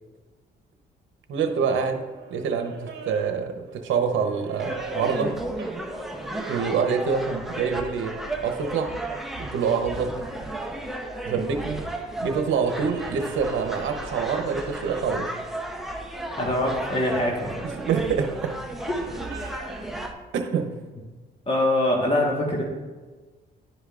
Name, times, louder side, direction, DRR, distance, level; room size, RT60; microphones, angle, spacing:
voice 1, 1.3-2.0 2.3-5.3 6.5-8.1 8.4-8.9 9.4-10.1 11.2-11.8 12.2-15.3 17.8-18.5 19.3-19.4 20.3-20.7, right 6 dB, 75° right, 5 dB, 0.9 m, -26 dB
sound 1, 1.4-9.0 9.4-19.9, right 5 dB, 60° right, 1.2 m, -44 dB
sound 2, 4.6-20.1, right 1 dB, ahead, 0.8 m, -34 dB
voice 2, 16.4-17.6 21.5-22.6, left 1 dB, 30° left, -1 dB, 1.5 m, -23 dB
11.0 x 5.1 x 2.5 m, 1.3 s
cardioid pair, 90°, 20 cm